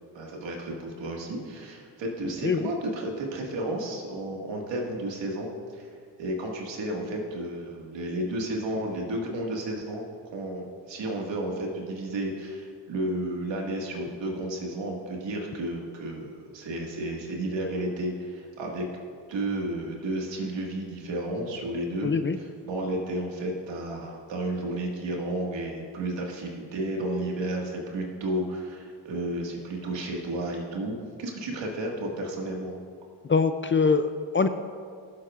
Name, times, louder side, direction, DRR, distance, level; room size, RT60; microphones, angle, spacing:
voice 1, 0.1-5.9 6.2-10.0 10.3-18.9 19.3-22.1 22.7-32.7, right 1 dB, 80° right, -1 dB, 1.9 m, -32 dB
voice 2, 22.0-22.4 33.3-34.5, left 4 dB, 30° left, 9 dB, 0.5 m, -23 dB
15.5 x 7.6 x 2.5 m, 2.1 s
cardioid pair, 65°, 44 cm